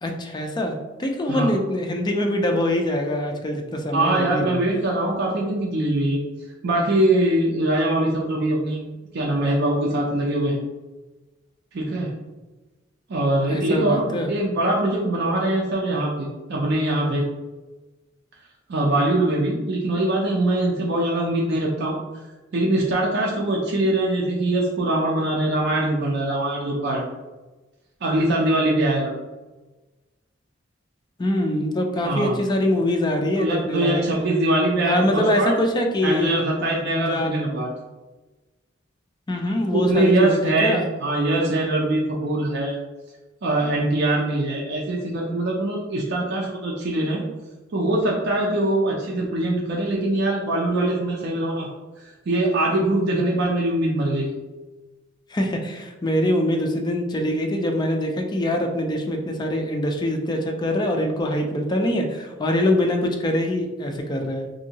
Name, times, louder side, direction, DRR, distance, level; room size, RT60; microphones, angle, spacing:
voice 1, 0.0-4.6 13.5-14.3 31.2-34.0 34.9-36.4 36.9-37.3 39.3-40.8 55.3-64.5, left 1 dB, 20° left, 3 dB, 0.3 m, -24 dB
voice 2, 3.9-6.2 6.6-10.6 11.7-12.1 13.1-17.2 18.7-22.0 22.5-27.0 28.0-29.1 32.0-32.4 33.3-35.5 36.0-37.7 39.7-42.8 43.4-47.2 47.7-51.7 52.0-54.3, right 1 dB, 60° right, -3 dB, 0.4 m, -22 dB
2.7 x 2.6 x 2.8 m, 1.2 s
head